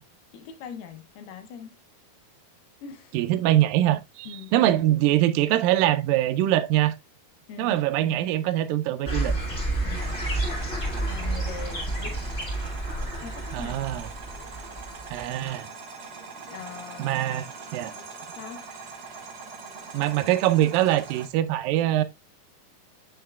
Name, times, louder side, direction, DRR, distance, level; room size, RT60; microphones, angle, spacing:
voice 1, 0.3-1.8 2.8-3.2 4.3-4.5 7.5-8.4 9.8-10.2 10.9-12.2 13.2-14.0 16.4-17.3 17.9-18.1 18.4-18.6, left 7 dB, 80° left, 2.8 m, -42 dB
voice 2, 3.1-7.0 7.6-9.3 13.5-14.1 15.1-15.7 17.0-17.9 19.9-22.0, right 13 dB, 80° right, 2.1 m, -23 dB
sound 1, 9.1-15.2, right 2 dB, 25° left, 1.5 m, -30 dB
sound 2, 9.9-21.3, right 4 dB, 55° right, 2.3 m, -42 dB
6.8 x 6.4 x 2.3 m
omnidirectional pair, 4.5 m